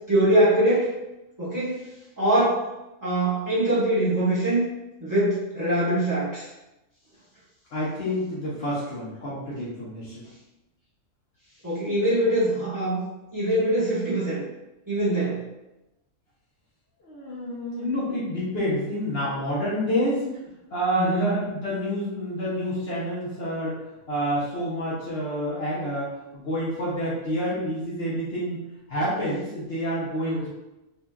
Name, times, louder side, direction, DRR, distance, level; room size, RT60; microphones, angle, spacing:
voice 1, 0.1-0.9 1.4-1.9 2.2-2.7 3.0-4.7 5.0-6.5 11.6-13.0 13.3-14.4 14.9-15.4 21.0-21.4 30.2-30.5, right 1 dB, 15° right, -10 dB, 0.9 m, -23 dB
voice 2, 7.7-10.3 17.0-20.2 20.7-28.6 28.9-30.5, equal, 55° left, -8 dB, 0.8 m, -28 dB
2.8 x 2.5 x 2.2 m, 0.95 s
omnidirectional pair, 1.4 m